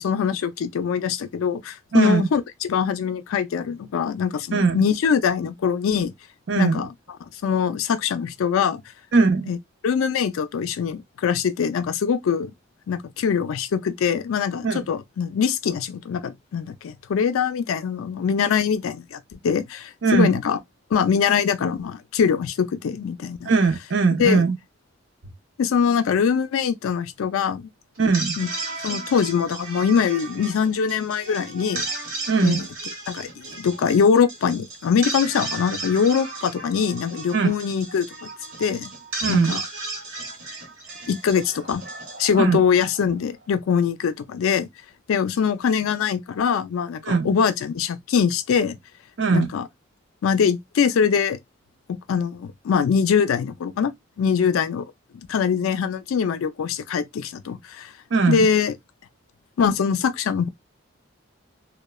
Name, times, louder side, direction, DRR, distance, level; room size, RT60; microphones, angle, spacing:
voice 1, 0.0-6.1 6.6-6.9 7.4-8.8 9.5-9.6 9.8-12.5 12.9-20.6 20.9-23.5 24.2-24.4 25.6-27.7 28.4-28.5 28.8-31.8 32.4-32.7 33.1-38.3 38.6-38.9 39.3-39.6 41.1-41.8 42.2-44.7 45.1-48.8 49.3-49.7 50.2-51.4 51.9-53.9 54.2-54.8 55.3-57.9 58.3-58.7 59.6-60.5, left 6 dB, 85° left, 0.3 m, -23 dB
voice 2, 1.9-2.3 4.5-4.8 6.5-6.8 9.1-9.5 14.6-14.8 20.0-20.3 23.4-24.6 28.0-28.4 32.3-32.6 37.3-37.5 39.2-39.5 42.4-42.6 47.0-47.3 49.2-49.5 58.1-58.5, right 4 dB, 60° right, 0.5 m, -20 dB
sound 1, 28.0-43.2, right 3 dB, 75° right, 1.0 m, -34 dB
3.0 x 2.1 x 2.2 m
head